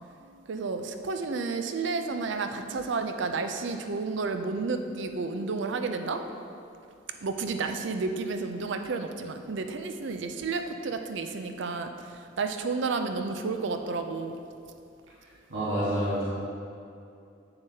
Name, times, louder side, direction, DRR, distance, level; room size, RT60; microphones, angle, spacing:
voice 1, 0.5-6.2 7.2-11.9 12.4-14.4, right 4 dB, 65° right, 7 dB, 0.5 m, -31 dB
voice 2, 15.5-16.2, equal, 90° right, -9 dB, 1.4 m, -28 dB
8.2 x 6.7 x 2.8 m, 2.5 s
head